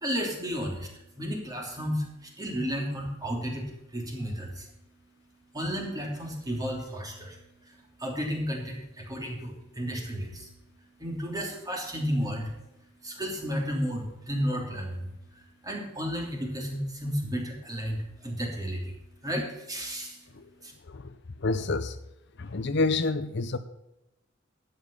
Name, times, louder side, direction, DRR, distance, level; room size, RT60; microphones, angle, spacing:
voice 1, 0.0-0.9 1.2-4.7 5.5-10.5 11.0-12.5 13.0-15.1 15.4-18.9 19.2-20.3 20.6-20.7, equal, 20° right, 3.1 m, -33 dB
voice 2, 21.4-22.0 22.4-23.6, left 3 dB, 60° left, 0.7 m, -27 dB
12.0 x 8.7 x 5.5 m
head